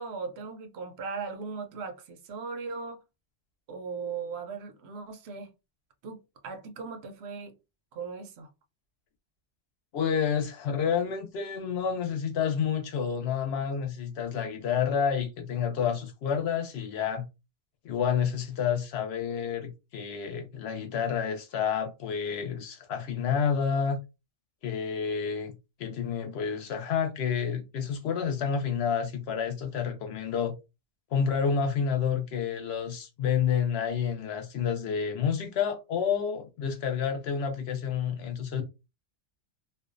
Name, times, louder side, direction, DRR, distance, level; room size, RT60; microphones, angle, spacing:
voice 1, 0.0-3.0 3.7-5.5 6.0-7.5 7.9-8.5, right 5 dB, 75° right, 0.8 m, -38 dB
voice 2, 9.9-17.3 17.8-24.0 24.6-25.5 25.8-30.5 31.1-38.6, left 7 dB, 75° left, 0.9 m, -29 dB
2.5 x 2.2 x 2.4 m
omnidirectional pair, 1.1 m